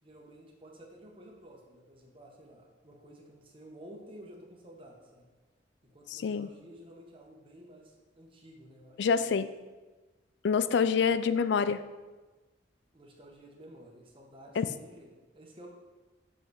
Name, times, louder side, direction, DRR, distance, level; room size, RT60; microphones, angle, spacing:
voice 1, 0.0-5.3 5.8-9.3 10.8-11.1 12.9-15.7, right 1 dB, 30° right, 0 dB, 1.2 m, -52 dB
voice 2, 6.1-6.5 9.0-9.5 10.4-11.8 14.6-14.7, left 6 dB, 65° left, 14 dB, 0.3 m, -26 dB
5.6 x 5.5 x 6.3 m, 1.2 s
head